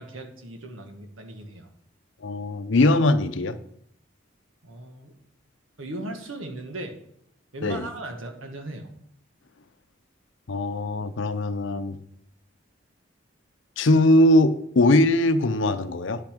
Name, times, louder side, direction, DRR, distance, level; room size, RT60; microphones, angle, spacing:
voice 1, 0.0-1.7 4.6-5.1 5.8-6.9 7.5-8.9, right 1 dB, 85° right, 5 dB, 1.5 m, -37 dB
voice 2, 2.2-3.6 7.6-7.9 10.5-12.0 13.8-16.2, left 1 dB, 70° left, 12 dB, 0.6 m, -21 dB
10.0 x 6.0 x 5.1 m, 0.71 s
head